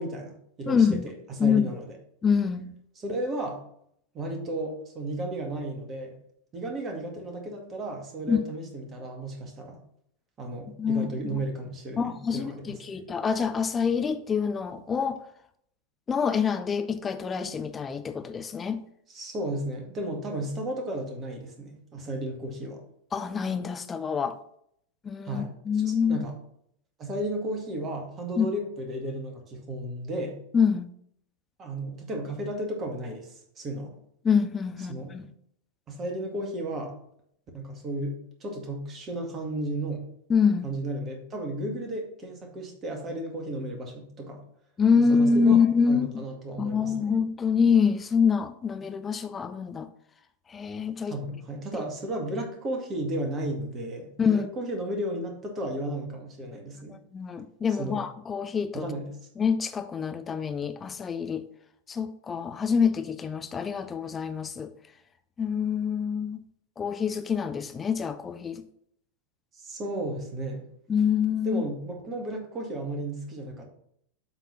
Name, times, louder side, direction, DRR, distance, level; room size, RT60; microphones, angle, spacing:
voice 1, 0.0-2.0 3.0-3.6 4.1-6.2 6.5-9.8 10.4-13.0 19.1-22.8 25.3-25.5 25.9-26.4 27.0-30.4 31.6-33.9 34.9-35.1 35.9-36.9 37.5-40.1 40.6-44.4 45.0-45.6 45.9-47.1 51.1-57.0 57.8-58.0 58.7-59.2 69.5-70.7 71.4-73.6, right 1 dB, 25° right, 2.0 m, -34 dB
voice 2, 0.7-1.1 1.4-1.6 2.2-2.7 8.3-8.4 10.8-11.4 12.0-15.2 16.1-18.8 23.1-24.4 25.0-26.2 28.4-28.5 30.5-30.9 34.2-35.3 40.3-40.7 44.8-46.1 46.6-49.9 50.5-51.2 51.7-51.8 54.2-54.5 57.1-58.9 59.4-61.5 61.9-64.7 65.4-66.4 66.8-68.6 70.9-71.6, left 6 dB, 20° left, 0.5 m, -26 dB
8.0 x 4.0 x 5.8 m
figure-of-eight pair, 90°, 0 cm